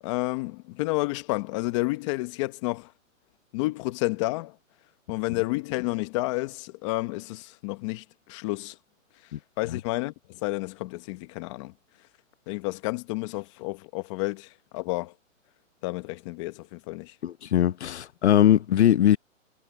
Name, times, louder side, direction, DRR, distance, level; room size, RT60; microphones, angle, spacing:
voice 1, 0.0-2.9 3.5-4.6 5.1-8.8 9.6-11.7 12.5-15.1 15.8-17.1, left 21 dB, 25° left, 1.2 m, -30 dB
voice 2, 17.2-19.2, left 11 dB, 55° left, 1.0 m, -21 dB
hypercardioid pair, 160°, 40 cm